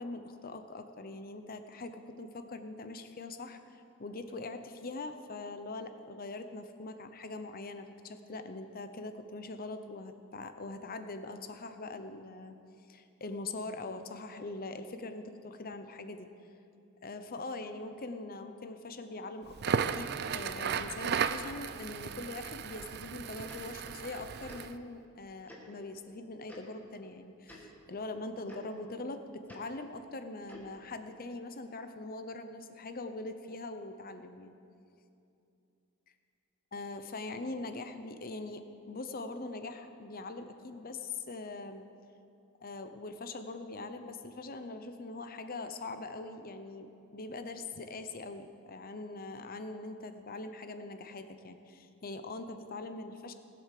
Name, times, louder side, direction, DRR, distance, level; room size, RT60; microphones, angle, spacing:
voice 1, 0.0-12.6 12.9-16.3 17.0-34.5 36.7-41.8 42.6-53.3, left 2 dB, 40° left, 8 dB, 0.8 m, -42 dB
Crackle, 19.5-24.7, right 7 dB, 45° right, 0.4 m, -35 dB
Tick-tock, 23.5-23.6 24.5-24.6 25.5-25.6 26.5-26.6 27.4-27.6 28.5-28.6 29.5-29.6 30.5-30.7, left 1 dB, 10° left, 1.9 m, -51 dB
19.5 x 7.8 x 6.7 m, 2.6 s
head